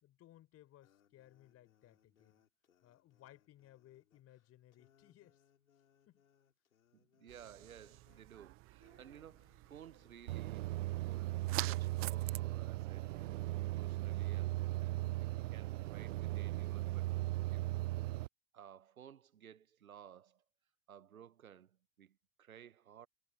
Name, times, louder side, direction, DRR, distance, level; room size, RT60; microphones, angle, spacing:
voice 1, 0.0-2.4 2.8-5.4 6.1-6.2, left 14 dB, 35° left, 4.1 m, -62 dB
sound 1, 0.8-18.1, left 8 dB, 80° left, 5.0 m, -74 dB
voice 2, 6.9-13.3 13.6-17.1 17.5-17.7 18.5-20.4 20.9-23.1, right 9 dB, 85° right, 1.1 m, -57 dB
sound 2, 7.3-12.4, right 20 dB, 35° right, 0.7 m, -47 dB
sound 3, 10.3-18.3, right 17 dB, 65° right, 0.5 m, -37 dB
hypercardioid pair, 95°, 41 cm